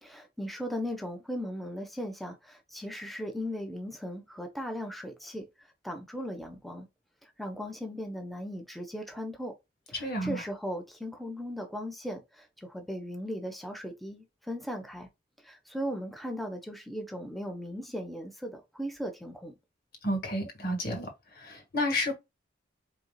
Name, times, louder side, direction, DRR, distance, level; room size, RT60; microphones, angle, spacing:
voice 1, 0.0-5.5 5.8-6.9 7.2-9.5 9.9-15.1 15.4-19.5, equal, ahead, 1.1 m, -37 dB
voice 2, 10.0-10.4 20.0-21.1 21.4-22.2, left 1 dB, 55° left, 1.7 m, -30 dB
4.7 x 3.8 x 2.3 m
head